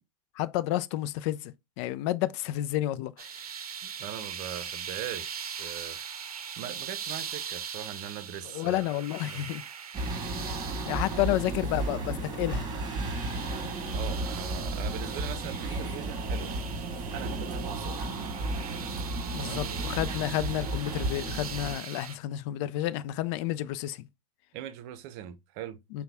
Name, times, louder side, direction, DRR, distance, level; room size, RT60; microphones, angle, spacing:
voice 1, 0.4-3.3 8.5-9.6 10.9-12.7 19.3-24.1 25.9-26.0, left 14 dB, 50° left, 0.4 m, -30 dB
sound 1, 3.2-22.2, right 7 dB, 90° right, 0.6 m, -41 dB
voice 2, 3.8-6.0 6.6-8.8 9.3-9.5 11.0-11.4 13.9-16.5 17.1-18.0 19.4-19.8 24.5-25.8, right 11 dB, 50° right, 0.7 m, -41 dB
sound 2, 9.9-21.8, right 2 dB, 25° right, 1.6 m, -33 dB
5.6 x 2.3 x 3.4 m
hypercardioid pair, 100°, 19 cm